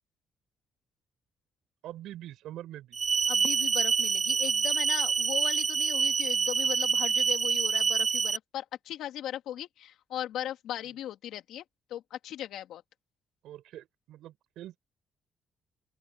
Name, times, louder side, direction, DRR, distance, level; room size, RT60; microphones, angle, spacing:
voice 1, 1.8-3.0 13.4-14.8, right 13 dB, 85° right, 5.1 m, -44 dB
sound 1, 2.9-8.4, right 6 dB, 40° right, 0.5 m, -26 dB
voice 2, 3.3-11.6 11.9-12.8, left 11 dB, 85° left, 3.0 m, -38 dB
open air
cardioid pair, 90°, 0 cm